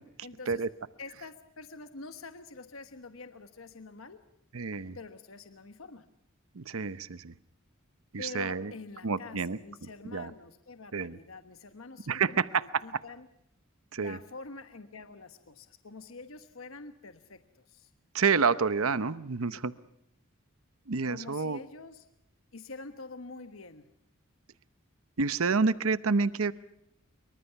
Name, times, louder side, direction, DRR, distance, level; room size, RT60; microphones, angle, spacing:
voice 1, 0.2-0.6 1.0-4.2 4.9-6.1 8.2-13.3 14.0-17.9 19.5-19.6 21.1-22.1 22.5-23.9, left 3 dB, 75° left, 9 dB, 1.2 m, -46 dB
voice 2, 4.5-5.0 6.6-7.3 8.1-8.7 9.0-9.6 10.1-10.3 10.9-11.2 12.1-12.8 13.9-14.2 18.1-19.7 20.9-21.6 25.2-26.5, right 5 dB, 85° right, 14 dB, 0.8 m, -28 dB
25.5 x 24.0 x 5.9 m, 0.80 s
head